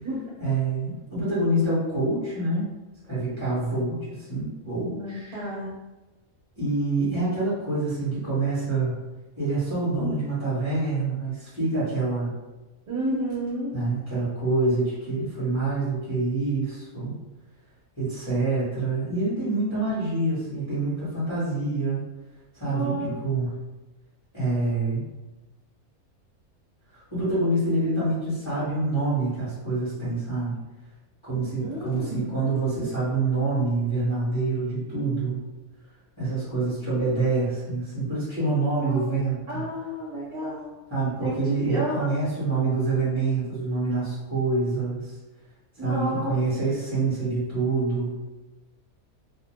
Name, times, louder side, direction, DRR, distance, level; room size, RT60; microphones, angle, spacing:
voice 1, 0.4-2.7 3.1-5.4 6.6-8.9 9.4-12.3 13.7-17.1 18.0-22.0 22.5-23.5 24.3-25.0 26.9-30.6 31.2-35.4 36.2-39.6 40.9-45.2 45.8-48.2, right 3 dB, 20° left, -11 dB, 1.0 m, -26 dB
voice 2, 4.9-5.7 12.9-13.8 19.7-19.9 22.7-23.1 31.6-32.3 38.8-40.8 41.2-41.4 41.6-42.1 45.8-46.3, right 1 dB, 55° right, -7 dB, 1.1 m, -31 dB
2.6 x 2.0 x 3.1 m, 1.1 s
omnidirectional pair, 1.5 m